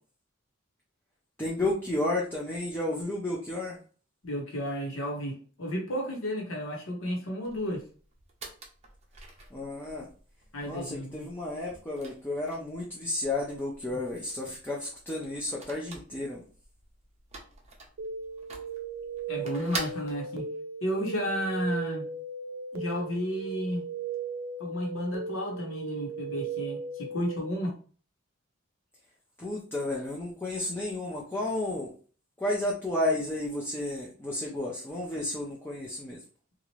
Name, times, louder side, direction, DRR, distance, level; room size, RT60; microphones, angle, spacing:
voice 1, 1.4-3.8 9.5-10.1 10.6-16.4 29.4-31.9 32.4-36.2, left 1 dB, 10° left, -3 dB, 0.5 m, -32 dB
voice 2, 4.2-7.8 10.5-11.3 13.9-14.0 19.3-20.5 20.8-22.1 22.7-23.8 24.6-27.8, equal, 80° left, 0 dB, 1.1 m, -32 dB
sound 1, 7.4-20.2, right 3 dB, 35° right, 0.6 m, -46 dB
sound 2, 18.0-27.5, right 5 dB, 70° right, 0.4 m, -37 dB
2.9 x 2.5 x 3.0 m, 0.40 s
head